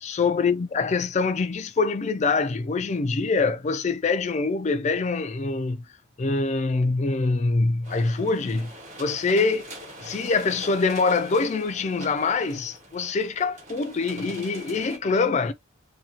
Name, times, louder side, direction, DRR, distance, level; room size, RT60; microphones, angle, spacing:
voice 1, 0.0-5.8 6.2-8.7 9.0-9.7 10.0-15.5, left 4 dB, 35° left, 0.4 m, -24 dB
sound 1, 7.8-15.0, right 1 dB, 35° right, 1.3 m, -43 dB
2.8 x 2.8 x 2.8 m
head